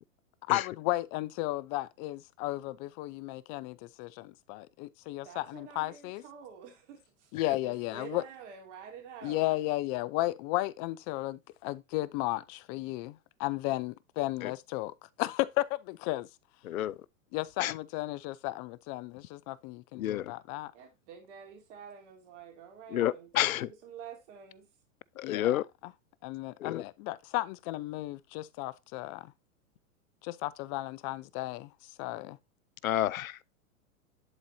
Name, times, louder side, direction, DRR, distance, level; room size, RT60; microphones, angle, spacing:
voice 1, 0.5-6.2 7.3-8.2 9.2-16.3 17.3-20.7 25.2-25.6 26.2-29.3 30.2-31.7 32.0-32.4, left 18 dB, 35° left, 0.6 m, -34 dB
voice 2, 5.2-7.3 7.6-9.4 20.7-24.7, right 7 dB, 60° right, 3.1 m, -48 dB
voice 3, 16.6-17.0 17.6-17.7 19.9-20.3 22.9-23.7 25.2-25.6 26.6-26.8 32.8-33.4, left 12 dB, 85° left, 0.6 m, -30 dB
11.0 x 4.1 x 2.7 m
hypercardioid pair, 120°, 40 cm